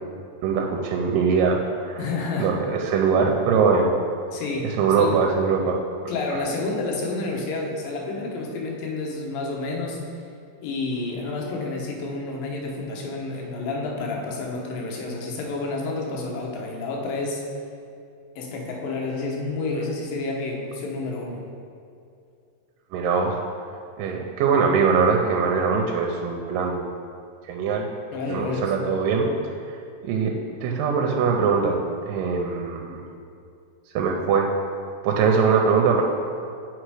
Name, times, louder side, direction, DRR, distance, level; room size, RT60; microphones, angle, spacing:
voice 1, 0.4-2.0 2.4-3.9 4.6-5.8 22.9-23.4 24.0-26.9 27.4-27.9 28.3-29.3 30.0-30.3 30.6-33.0 34.0-34.5 35.0-36.0, right 5 dB, 80° right, 1 dB, 2.1 m, -22 dB
voice 2, 2.0-2.5 4.3-5.2 6.1-10.0 10.6-17.4 18.4-21.4 28.1-28.7, left 3 dB, 80° left, -1 dB, 2.7 m, -29 dB
7.6 x 4.4 x 4.7 m, 2.5 s
omnidirectional pair, 4.1 m